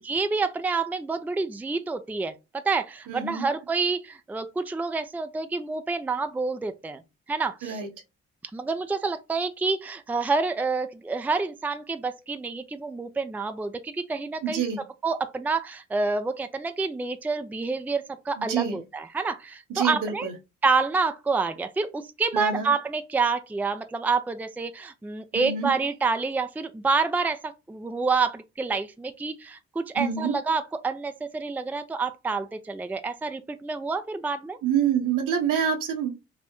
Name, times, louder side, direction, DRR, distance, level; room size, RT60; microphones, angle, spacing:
voice 1, 0.0-7.0 7.3-7.8 8.5-14.6 15.0-20.3 20.6-34.6, right 4 dB, 5° right, 0.4 m, -28 dB
voice 2, 3.1-3.5 7.6-7.9 14.4-14.8 18.4-18.8 19.7-20.3 22.3-22.7 25.3-25.7 29.9-30.4 34.6-36.1, right 7 dB, 70° right, 1.1 m, -26 dB
5.2 x 2.1 x 3.0 m
hypercardioid pair, 50°, 33 cm